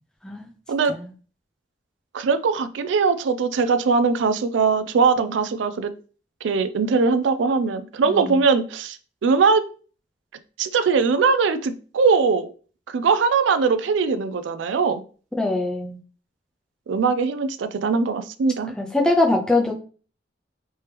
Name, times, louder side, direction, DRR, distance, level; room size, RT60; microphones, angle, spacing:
voice 1, 2.1-5.9 6.4-9.0 9.2-9.6 10.6-12.5 12.9-15.0 16.9-18.7, right 5 dB, 85° right, 11 dB, 0.4 m, -21 dB
voice 2, 8.1-8.4 15.4-16.0 18.8-19.7, left 2 dB, 5° left, 0 dB, 0.5 m, -22 dB
3.3 x 2.9 x 3.3 m, 0.39 s
head